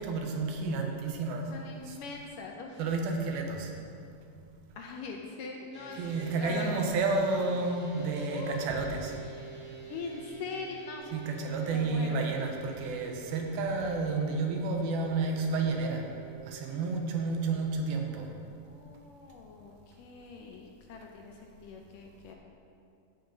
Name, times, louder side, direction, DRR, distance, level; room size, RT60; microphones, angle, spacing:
voice 1, 0.0-1.4 1.9-2.0 2.8-3.7 6.0-9.1 11.1-16.1 16.5-18.3, right 3 dB, 80° right, 2 dB, 2.8 m, -31 dB
voice 2, 1.5-2.8 4.8-6.0 6.3-7.0 8.2-8.7 9.9-11.1 11.7-12.3 18.5-22.3, left 4 dB, 75° left, 1 dB, 2.1 m, -42 dB
sound 1, 5.7-17.9, right 7 dB, 5° left, 1.4 m, -47 dB
14.5 x 5.7 x 5.2 m, 2.5 s
omnidirectional pair, 4.3 m